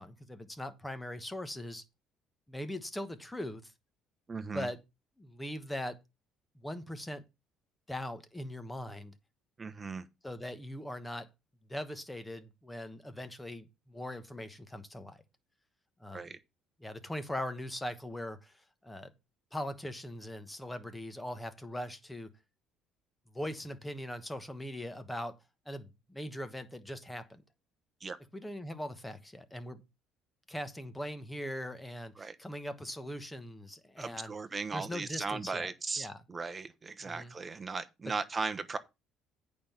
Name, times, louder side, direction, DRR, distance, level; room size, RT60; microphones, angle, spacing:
voice 1, 0.0-1.8 2.5-3.7 4.5-4.8 5.2-6.0 6.5-7.2 7.9-9.1 10.2-11.3 11.7-15.2 16.0-16.3 16.8-19.1 19.5-22.3 23.3-25.4 25.6-27.4 28.3-29.8 30.5-34.3 34.7-35.7 36.0-36.2 37.0-37.3 38.0-38.1, left 1 dB, 10° left, 1.2 m, -40 dB
voice 2, 4.3-4.7 9.6-10.1 16.1-16.4 28.0-28.2 32.2-32.4 34.0-38.8, right 4 dB, 20° right, 1.0 m, -37 dB
8.7 x 5.4 x 5.8 m
cardioid pair, 130°, 0 cm